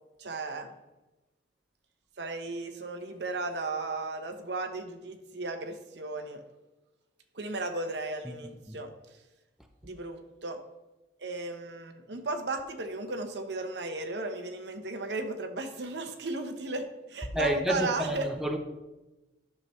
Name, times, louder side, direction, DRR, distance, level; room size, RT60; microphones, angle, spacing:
voice 1, 0.2-0.7 2.2-6.4 7.3-9.2 9.8-10.6 11.2-18.3, right 3 dB, 75° right, 1.0 m, -35 dB
voice 2, 17.3-18.6, equal, ahead, 0.7 m, -29 dB
11.0 x 6.9 x 3.2 m
head